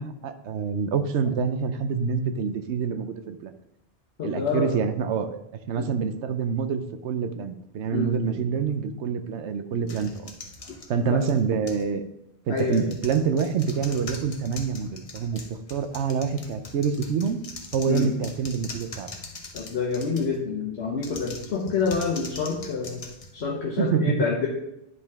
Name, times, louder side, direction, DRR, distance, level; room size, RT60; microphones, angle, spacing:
voice 1, 0.0-3.5 4.2-5.4 5.7-10.3 10.9-12.0 12.5-17.4 17.7-19.1 23.8-24.2, right 6 dB, 80° right, 10 dB, 0.9 m, -26 dB
voice 2, 4.2-4.9 5.8-5.9 7.9-8.4 10.7-10.8 11.0-11.2 12.5-12.9 17.9-18.1 19.5-23.0 23.3-24.5, left 5 dB, 70° left, -3 dB, 1.2 m, -28 dB
sound 1, 9.9-11.9 12.5-20.4 20.9-23.9, left 3 dB, 35° left, 0.7 m, -42 dB
9.7 x 5.1 x 3.5 m, 0.85 s
omnidirectional pair, 1.2 m